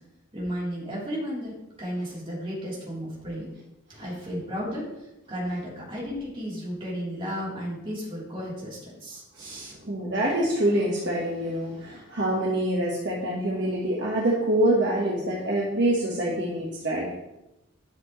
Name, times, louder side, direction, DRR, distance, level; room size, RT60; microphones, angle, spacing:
voice 1, 0.3-3.5 3.9-4.8 5.3-9.7, equal, 25° right, -6 dB, 3.5 m, -34 dB
voice 2, 9.4-17.1, right 1 dB, 55° right, -4 dB, 1.4 m, -26 dB
11.0 x 7.3 x 3.1 m, 0.92 s
head